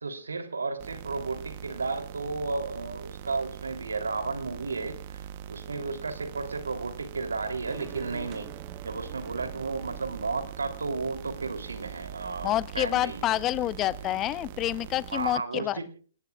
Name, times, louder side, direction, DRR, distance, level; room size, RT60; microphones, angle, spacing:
voice 1, 0.0-5.2 5.5-8.5 8.8-13.4 13.8-13.9 15.1-15.9, right 3 dB, 85° right, 7 dB, 3.1 m, -33 dB
sound 1, 0.8-15.4, right 10 dB, 45° right, 1.0 m, -42 dB
sound 2, 7.7-15.1, right 12 dB, 30° right, 1.3 m, -50 dB
voice 2, 12.4-15.8, left 14 dB, 25° left, 18 dB, 0.8 m, -28 dB
29.0 x 18.0 x 2.4 m, 0.41 s
hypercardioid pair, 125°, 0 cm